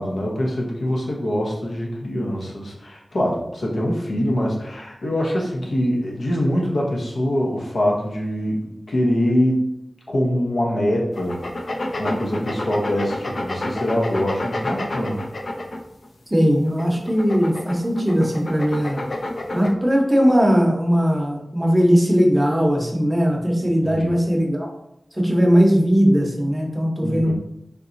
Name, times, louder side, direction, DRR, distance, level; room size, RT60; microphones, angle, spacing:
voice 1, 0.0-9.7 10.1-15.2 23.8-24.1 27.0-27.3, equal, 85° left, -2 dB, 0.8 m, -24 dB
sound 1, 11.1-16.1 16.7-19.7, left 1 dB, 65° left, 0.4 m, -29 dB
voice 2, 16.3-19.0 19.5-24.7 25.1-27.3, equal, 15° right, 1 dB, 0.7 m, -19 dB
3.6 x 2.9 x 2.6 m, 0.80 s
wide cardioid pair, 80°, 0 cm